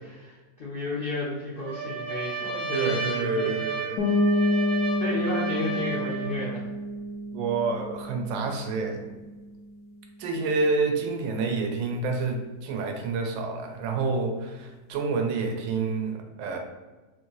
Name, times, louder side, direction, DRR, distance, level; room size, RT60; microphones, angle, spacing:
voice 1, 0.0-3.6 5.0-6.6, left 1 dB, 85° left, -6 dB, 0.5 m, -32 dB
Trumpet, 1.6-6.4, right 4 dB, 55° right, 1.5 m, -33 dB
voice 2, 2.7-4.0 7.3-9.2 10.2-16.6, right 4 dB, 85° right, 3 dB, 1.4 m, -28 dB
sound 1, 4.0-9.6, left 1 dB, 65° left, 0.9 m, -28 dB
4.0 x 2.6 x 3.1 m, 1.2 s
omnidirectional pair, 2.1 m